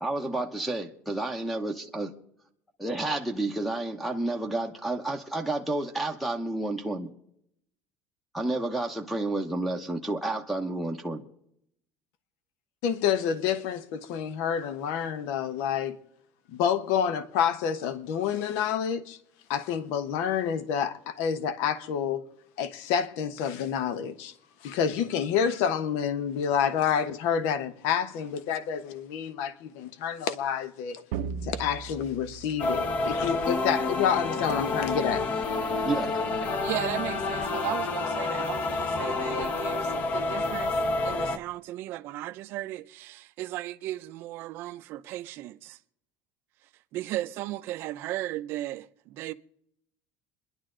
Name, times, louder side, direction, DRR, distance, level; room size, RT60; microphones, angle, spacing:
voice 1, 0.0-2.1 2.8-7.1 8.3-11.2 35.8-36.1, right 2 dB, ahead, 0.9 m, -30 dB
voice 2, 12.8-16.0 16.6-19.2 19.5-22.2 22.6-24.3 24.6-31.0 31.5-35.2, left 8 dB, 65° left, 1.1 m, -28 dB
sound 1, 31.1-33.7, right 7 dB, 85° right, 0.7 m, -38 dB
sound 2, 32.6-41.4, left 3 dB, 30° left, 0.9 m, -29 dB
voice 3, 36.6-40.7 41.0-45.8 46.9-49.3, right 16 dB, 45° right, 0.6 m, -36 dB
27.5 x 11.0 x 3.8 m
cardioid pair, 180°, 5 cm